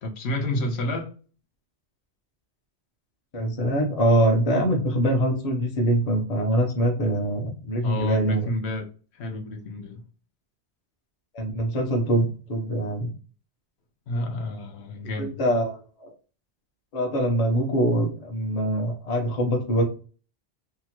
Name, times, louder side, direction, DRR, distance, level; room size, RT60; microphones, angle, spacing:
voice 1, 0.0-1.2 7.8-8.9 9.1-10.0 14.1-15.4, left 1 dB, 75° left, 0.9 m, -30 dB
voice 2, 3.3-8.5 11.3-13.1 15.2-16.1 16.9-19.8, right 1 dB, 40° left, 0.8 m, -24 dB
2.8 x 2.3 x 2.9 m
omnidirectional pair, 1.1 m